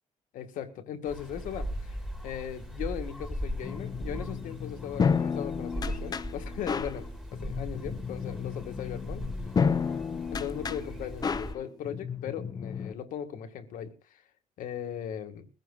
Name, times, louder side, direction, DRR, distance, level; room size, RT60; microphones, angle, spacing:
voice 1, 0.3-1.9 2.2-9.2 10.3-14.2 14.6-15.5, left 9 dB, 80° left, 1.8 m, -38 dB
sound 1, 1.1-11.5, equal, 5° right, 1.8 m, -39 dB
sound 2, 3.6-12.9, left 6 dB, 30° left, 0.8 m, -32 dB
21.5 x 15.5 x 2.4 m
cardioid pair, 135°, 13 cm